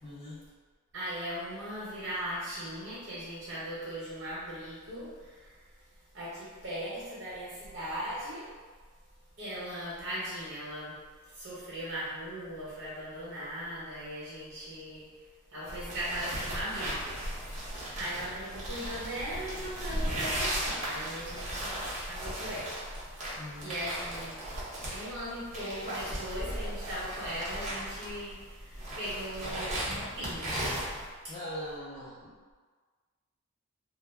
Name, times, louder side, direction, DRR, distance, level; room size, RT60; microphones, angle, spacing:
voice 1, 0.0-0.5 23.4-23.8 31.3-32.4, equal, 25° left, -10 dB, 0.4 m, -41 dB
voice 2, 0.9-5.5 6.1-8.5 9.4-11.0 11.3-15.0 15.5-17.2 18.0-21.7 22.1-22.8 23.1-24.4 24.9-30.9, equal, 65° right, -9 dB, 0.9 m, -39 dB
sound 1, 15.7-31.1, right 1 dB, 35° right, 0.7 m, -36 dB
2.2 x 2.0 x 3.3 m, 1.5 s
head